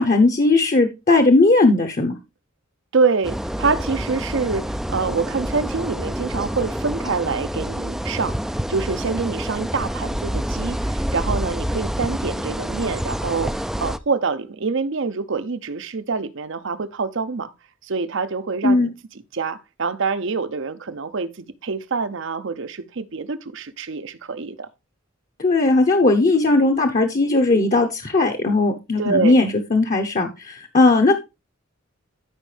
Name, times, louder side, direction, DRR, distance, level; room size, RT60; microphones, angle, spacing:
voice 1, 0.0-2.1 18.6-18.9 25.4-31.1, left 2 dB, 40° left, 0.9 m, -17 dB
voice 2, 2.9-8.4 8.7-17.5 17.8-18.9 19.3-24.7 29.0-29.4, right 4 dB, 65° right, 0.7 m, -26 dB
sound 1, 3.2-14.0, equal, ahead, 0.3 m, -27 dB
12.5 x 5.3 x 3.3 m
head